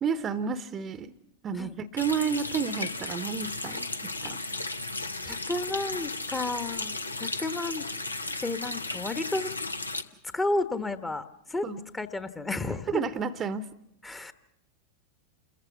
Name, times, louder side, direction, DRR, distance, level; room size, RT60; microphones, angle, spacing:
voice 1, 0.0-1.1 1.4-3.9 4.2-4.4 11.6-11.8 12.9-13.7, right 6 dB, 25° right, 14 dB, 0.9 m, -31 dB
Water tap faucet, 2.0-10.0, left 2 dB, 80° left, 1.0 m, -35 dB
voice 2, 5.2-7.9 8.4-9.5 10.3-11.7 11.9-13.0 14.0-14.3, left 2 dB, 10° left, 12 dB, 1.1 m, -32 dB
28.5 x 15.0 x 7.1 m, 0.81 s
figure-of-eight pair, 90°, 0 cm